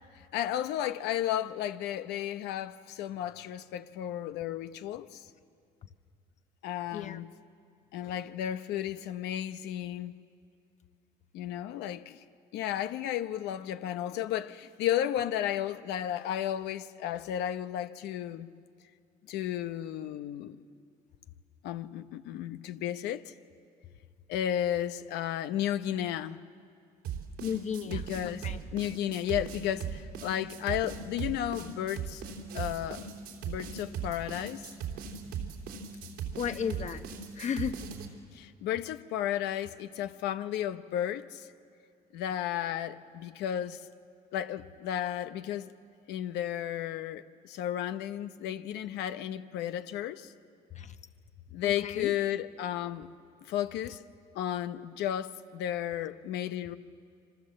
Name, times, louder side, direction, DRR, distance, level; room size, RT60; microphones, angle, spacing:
voice 1, 0.1-5.2 6.6-7.3 7.9-10.1 11.3-12.2 12.5-18.5 19.3-20.6 21.6-23.2 24.3-26.4 27.8-32.2 32.5-33.1 33.5-34.7 38.3-41.5 42.1-43.8 44.3-45.7 46.1-50.3 51.5-53.1 53.5-54.0 54.3-56.8, left 11 dB, 85° left, 0.9 m, -33 dB
sound 1, 27.0-38.1, right 7 dB, 85° right, 3.3 m, -38 dB
voice 2, 27.4-28.6 36.3-37.8 50.7-51.0 51.6-52.1, left 7 dB, 45° left, 1.2 m, -35 dB
27.0 x 25.0 x 7.6 m
cardioid pair, 110°, 17 cm